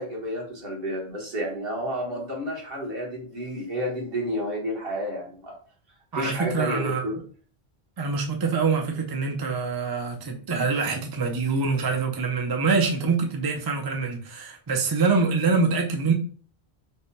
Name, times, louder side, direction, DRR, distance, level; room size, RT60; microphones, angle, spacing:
voice 1, 0.0-5.6 6.1-7.1, equal, 65° right, 1.4 m, -30 dB
voice 2, 6.1-7.2 8.0-16.1, right 4 dB, 35° right, 0.4 m, -25 dB
3.4 x 2.2 x 4.0 m
omnidirectional pair, 1.1 m